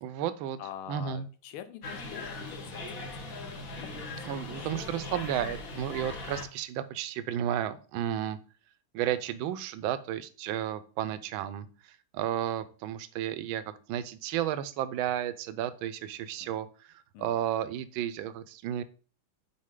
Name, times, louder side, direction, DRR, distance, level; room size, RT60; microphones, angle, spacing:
voice 1, 0.0-0.6 0.9-1.3 4.3-8.4 8.9-11.7 12.1-16.7 17.2-18.8, right 11 dB, 75° right, 13 dB, 1.3 m, -32 dB
voice 2, 0.6-3.4 3.8-4.3 4.6-4.7 16.4-16.5 17.1-17.5, left 10 dB, 80° left, 11 dB, 1.5 m, -46 dB
sound 1, 1.8-6.4, left 2 dB, 50° left, 1.2 m, -39 dB
6.5 x 4.5 x 3.7 m, 0.38 s
omnidirectional pair, 2.4 m